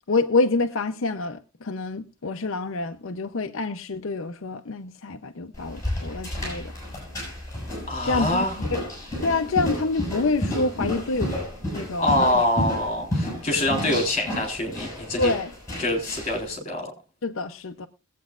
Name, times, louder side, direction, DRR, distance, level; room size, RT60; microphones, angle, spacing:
voice 1, 0.1-6.7 8.0-8.4 8.7-8.8 9.2-11.4 11.7-12.4 13.7-13.9 15.2-15.5 17.2-17.9, left 3 dB, 75° left, 0.7 m, -27 dB
sound 1, 5.5-16.4, left 1 dB, 15° left, 7.1 m, -31 dB
voice 2, 7.9-8.6 12.0-15.3 15.8-16.9, left 1 dB, 30° left, 3.9 m, -25 dB
21.5 x 8.3 x 2.4 m
head